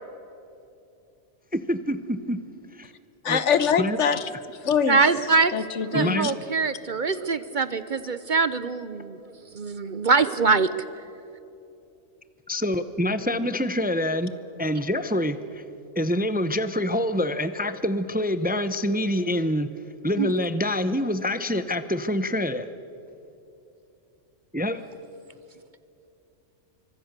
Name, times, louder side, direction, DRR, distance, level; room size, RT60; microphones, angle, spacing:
voice 1, 1.5-2.4 2.7-2.9 3.3-3.4 3.8-4.0 5.9-6.3 12.5-14.3 14.6-15.6 16.0-19.7 20.0-22.7 24.5-24.8, left 1 dB, 10° right, 12 dB, 0.6 m, -26 dB
voice 2, 3.2-4.3 4.6-5.0 5.5-6.3, left 6 dB, 75° left, 13 dB, 1.3 m, -23 dB
voice 3, 4.9-5.5 5.9-9.2 9.5-10.7 20.2-20.3, right 4 dB, 50° right, 13 dB, 0.7 m, -23 dB
24.5 x 24.0 x 6.7 m, 2.8 s
omnidirectional pair, 1.2 m